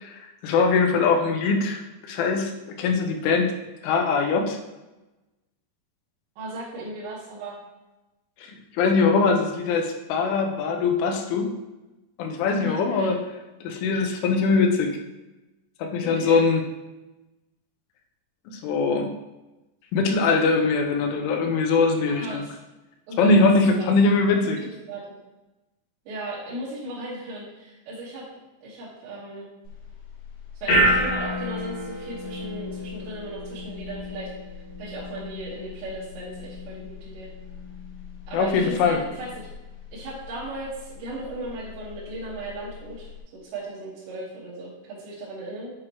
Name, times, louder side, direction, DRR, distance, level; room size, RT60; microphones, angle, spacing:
voice 1, 0.4-2.5 2.8-3.6 3.8-4.6 8.4-8.5 8.7-11.5 12.2-13.2 13.6-14.9 15.8-16.6 18.5-19.1 19.9-22.4 23.2-24.6 38.3-39.0, left 4 dB, 85° left, 3 dB, 3.3 m, -21 dB
voice 2, 6.4-7.6 12.6-13.1 16.0-16.4 22.1-22.6 23.1-23.5 23.8-23.9 24.4-24.6 24.8-25.2 26.1-28.2 28.6-29.5 30.6-34.3 34.8-37.3 38.3-39.5 39.9-43.1 43.4-45.7, right 2 dB, 70° right, -9 dB, 3.7 m, -36 dB
sound 1, 29.7-43.2, equal, 55° left, 2.5 m, -31 dB
8.2 x 6.1 x 3.0 m, 1.0 s
omnidirectional pair, 5.4 m